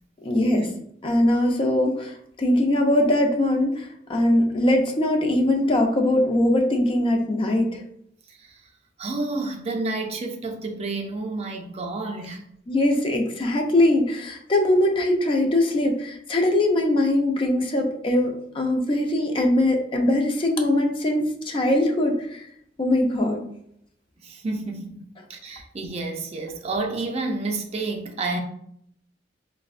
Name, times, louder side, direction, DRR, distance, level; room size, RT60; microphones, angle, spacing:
voice 1, 0.2-0.7 1.0-7.8 12.7-22.5 22.8-23.4, left 1 dB, 30° left, 0.4 m, -21 dB
voice 2, 9.0-12.4 24.2-25.0 25.3-28.4, right 3 dB, 35° right, 0.4 m, -30 dB
4.2 x 2.0 x 2.4 m
head